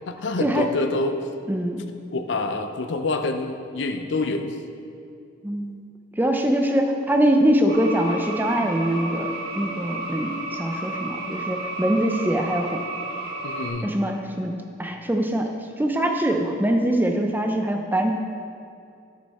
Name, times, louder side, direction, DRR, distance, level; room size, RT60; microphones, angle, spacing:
voice 1, 0.1-1.2 2.1-4.6 13.4-14.0, left 2 dB, 65° left, 7 dB, 0.6 m, -26 dB
voice 2, 1.5-1.8 5.4-5.8 6.2-12.8 13.8-15.5 15.8-18.1, right 1 dB, 10° right, 3 dB, 0.5 m, -23 dB
sound 1, 7.7-13.7, right 2 dB, 50° right, 1.5 m, -32 dB
10.5 x 6.4 x 4.2 m, 2.5 s
head